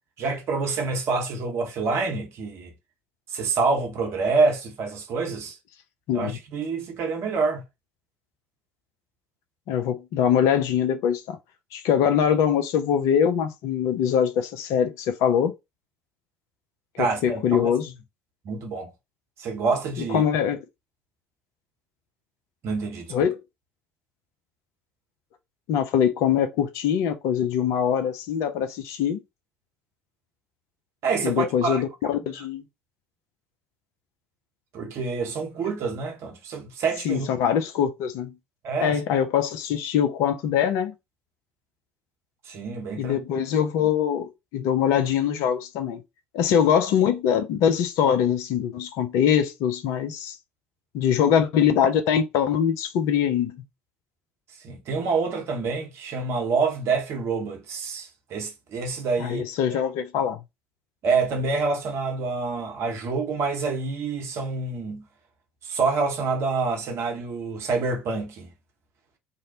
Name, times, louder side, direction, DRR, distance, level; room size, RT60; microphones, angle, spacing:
voice 1, 0.2-2.7 3.3-5.6 6.1-7.6 17.0-17.7 18.4-18.9 19.4-20.2 22.6-23.1 31.0-31.8 34.7-37.3 38.6-39.0 42.5-43.2 54.6-59.4 59.7-59.8 61.0-65.1 65.6-68.5, right 4 dB, 45° right, 0.8 m, -27 dB
voice 2, 6.1-6.4 9.7-11.4 11.7-15.5 17.0-17.9 20.1-20.6 23.1-23.3 25.7-29.2 31.2-32.6 37.0-38.3 38.8-40.9 43.0-46.0 46.3-50.4 50.9-53.6 59.2-60.4, left 8 dB, 55° left, 0.4 m, -23 dB
2.6 x 2.0 x 2.7 m
figure-of-eight pair, 60°, 6 cm